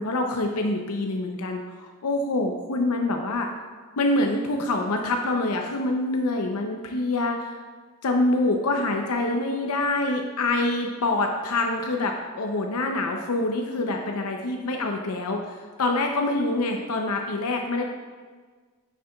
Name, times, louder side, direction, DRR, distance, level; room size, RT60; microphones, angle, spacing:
voice 1, 0.0-3.5 4.0-7.4 8.0-15.4 15.8-17.8, left 2 dB, 75° left, 3 dB, 0.6 m, -25 dB
9.3 x 6.6 x 2.3 m, 1.5 s
head